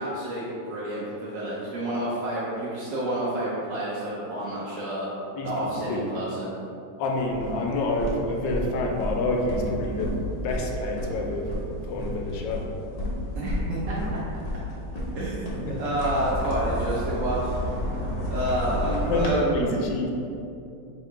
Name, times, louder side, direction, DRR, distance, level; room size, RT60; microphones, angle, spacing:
voice 1, 0.0-5.1 5.4-6.5 13.3-14.2 15.1-17.7 18.3-19.8, right 1 dB, 60° right, -7 dB, 0.9 m, -29 dB
voice 2, 5.3-6.0 7.0-10.2 10.4-11.5 11.8-12.7 15.7-15.8 18.8-20.1, left 2 dB, 85° left, 1 dB, 1.3 m, -28 dB
sound 1, 7.1-19.3, equal, 55° left, 0.4 m, -32 dB
3.5 x 2.8 x 4.5 m, 2.7 s
omnidirectional pair, 1.9 m